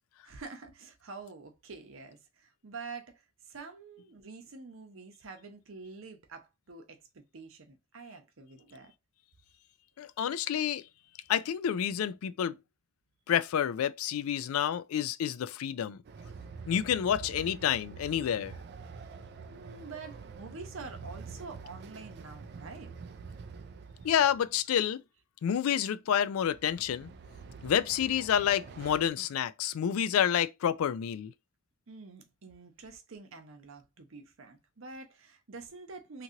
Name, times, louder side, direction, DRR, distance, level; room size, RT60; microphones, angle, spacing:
voice 1, 0.2-8.9 19.5-22.9 31.9-36.2, right 4 dB, 65° right, 0.8 m, -47 dB
voice 2, 10.0-10.8 11.3-12.5 13.3-16.0 16.7-18.5 24.0-25.0 25.4-27.1 27.6-31.3, left 9 dB, 80° left, 0.3 m, -29 dB
Train, 16.0-24.5 26.4-29.1, right 5 dB, 50° right, 0.3 m, -46 dB
2.9 x 2.5 x 2.7 m
head